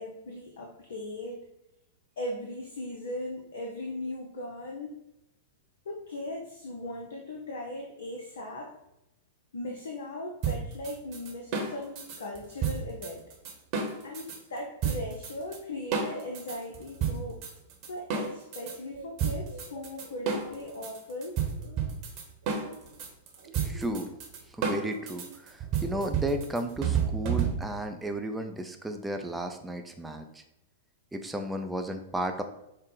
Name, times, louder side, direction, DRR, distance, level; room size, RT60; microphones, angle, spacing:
voice 1, 0.0-1.5 2.2-5.0 5.9-8.8 9.5-13.2 14.0-17.4 17.9-21.4, left 1 dB, 65° left, 1 dB, 0.6 m, -38 dB
sound 1, 10.4-14.4 14.8-15.6 15.9-18.8 19.2-27.9, right 6 dB, 40° right, 0.9 m, -31 dB
sound 2, 18.6-20.9 21.4-21.9 22.4-25.6, right 4 dB, 65° right, 0.7 m, -48 dB
voice 2, 23.6-24.1 24.5-30.4 31.1-32.4, right 1 dB, 5° right, 5 dB, 0.5 m, -33 dB
5.3 x 2.1 x 3.9 m, 0.88 s
figure-of-eight pair, 100°, 0 cm